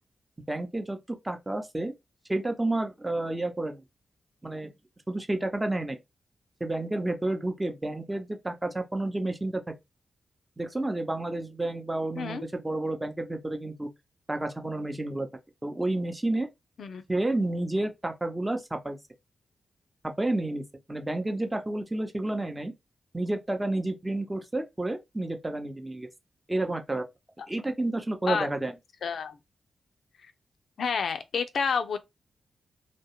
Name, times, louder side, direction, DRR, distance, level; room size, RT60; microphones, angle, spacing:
voice 1, 0.5-1.9 2.3-3.8 4.4-4.7 5.1-6.0 6.6-9.6 10.6-13.9 14.3-15.3 15.6-16.5 17.1-19.0 20.2-20.6 20.9-22.7 23.1-26.1 26.5-27.0 27.5-28.7, right 2 dB, 20° right, 0.6 m, -30 dB
voice 2, 29.0-29.4 30.8-32.0, left 6 dB, 75° left, 0.3 m, -29 dB
2.2 x 2.0 x 2.9 m
supercardioid pair, 40°, 0 cm